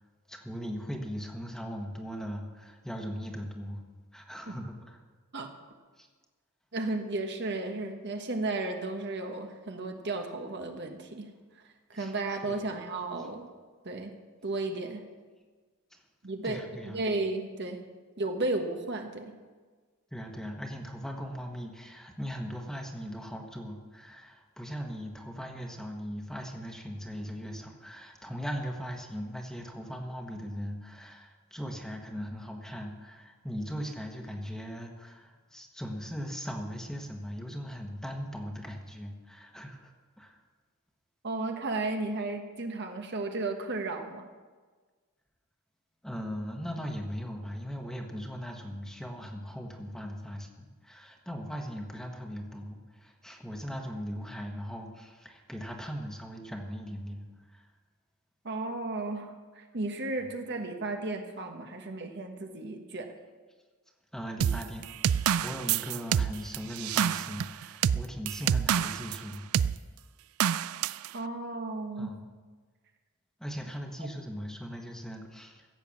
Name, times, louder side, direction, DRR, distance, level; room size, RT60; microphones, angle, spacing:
voice 1, 0.3-3.8 4.1-5.0 6.0-6.1 6.8-6.9 11.9-12.2 12.4-12.7 15.9-16.0 16.4-17.1 20.1-39.9 40.2-40.4 46.0-57.7 60.1-60.3 64.1-64.9 65.2-69.5 72.0-72.3 73.4-75.7, equal, 5° left, 2 dB, 1.4 m, -39 dB
voice 2, 6.7-11.3 11.9-13.5 13.8-14.1 14.4-15.0 16.2-17.8 18.2-19.3 41.2-44.3 58.4-63.1 71.1-72.2 74.0-74.1, right 2 dB, 55° right, 4 dB, 1.3 m, -34 dB
sound 1, 64.4-69.2 69.5-69.8 70.4-71.1, right 9 dB, 80° right, 0.4 m, -27 dB
15.5 x 8.0 x 7.3 m, 1.4 s
head